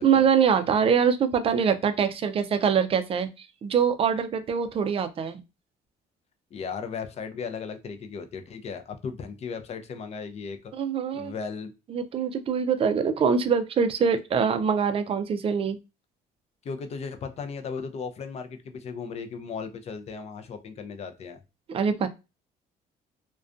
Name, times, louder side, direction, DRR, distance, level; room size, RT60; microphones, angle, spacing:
voice 1, 0.0-5.4 10.7-11.3 11.9-15.8 21.7-22.1, right 6 dB, 35° right, 10 dB, 0.4 m, -24 dB
voice 2, 6.5-10.7 11.1-11.7 16.6-21.4, left 5 dB, 40° left, 7 dB, 0.4 m, -36 dB
2.4 x 2.2 x 2.4 m, 0.27 s
cardioid pair, 110°, 17 cm